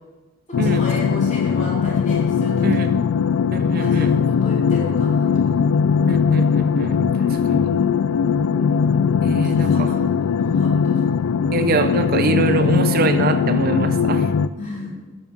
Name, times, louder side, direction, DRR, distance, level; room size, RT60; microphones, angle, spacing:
sound 1, 0.5-14.5, left 6 dB, 85° left, 0.3 m, -19 dB
voice 1, 0.6-3.0 3.6-5.3 9.4-10.0 10.4-11.0 14.6-14.9, left 1 dB, 35° left, -5 dB, 3.0 m, -34 dB
voice 2, 3.5-4.1 6.1-7.0 7.5-7.7 9.2-9.9 11.5-14.3, right 4 dB, 45° right, 9 dB, 0.5 m, -23 dB
9.2 x 5.8 x 5.4 m, 1.2 s
head